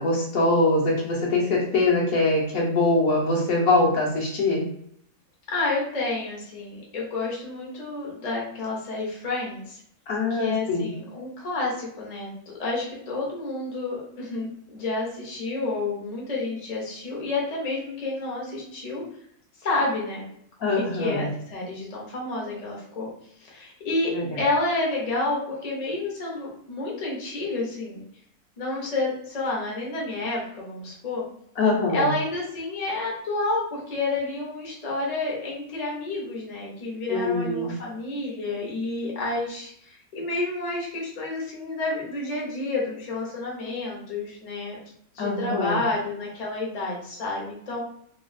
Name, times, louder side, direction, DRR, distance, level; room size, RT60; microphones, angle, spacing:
voice 1, 0.0-4.6 10.1-10.9 20.6-21.3 24.1-24.2 31.6-32.1 37.1-37.7 45.2-45.8, left 2 dB, 65° left, -3 dB, 1.2 m, -23 dB
voice 2, 5.5-9.8 10.3-12.3 12.6-19.0 19.6-20.3 20.7-23.1 23.4-28.0 28.6-31.2 31.9-44.8 45.1-47.8, left 2 dB, 35° left, -3 dB, 0.7 m, -30 dB
3.1 x 2.4 x 2.5 m, 0.68 s
omnidirectional pair, 1.7 m